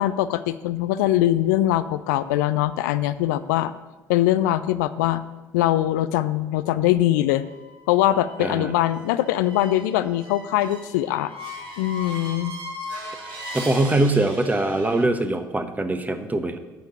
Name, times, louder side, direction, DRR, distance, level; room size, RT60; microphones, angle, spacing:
voice 1, 0.0-3.7 4.1-5.2 5.5-7.5 7.9-11.3 11.8-12.6, left 14 dB, 75° left, 13 dB, 0.4 m, -22 dB
sound 1, 7.3-15.0, equal, 55° right, 3.0 m, -39 dB
voice 2, 8.4-8.7 13.3-16.6, right 2 dB, 15° right, 8 dB, 1.3 m, -23 dB
9.0 x 6.7 x 8.0 m, 1.2 s
hypercardioid pair, 55°, 9 cm